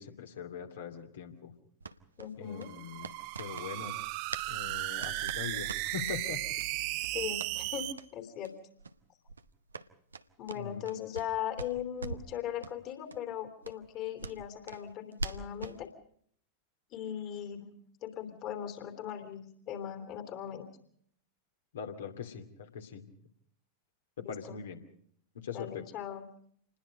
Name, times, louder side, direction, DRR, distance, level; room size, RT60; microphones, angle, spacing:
voice 1, 0.0-1.5 2.4-3.1 3.4-4.0 4.5-6.4 10.6-10.8 21.7-23.1 24.2-24.8 25.4-25.8, left 6 dB, 60° left, 5 dB, 2.6 m, -41 dB
sound 1, 1.8-4.5 4.7-6.2 6.6-6.7 7.0-7.5 7.9-8.1 8.4-8.5 8.8-9.0 9.3-11.3 11.6-12.3 12.6-12.8 13.1-13.2 13.6-15.8, right 3 dB, 75° right, 0.9 m, -43 dB
voice 2, 2.2-2.7 7.1-8.5 10.4-15.9 16.9-17.7 18.0-20.7 24.2-24.6 25.5-26.3, left 10 dB, 40° left, 8 dB, 3.1 m, -39 dB
sound 2, 2.5-7.9, right 16 dB, 45° right, 1.1 m, -36 dB
27.5 x 20.5 x 5.2 m, 0.63 s
figure-of-eight pair, 90°, 0 cm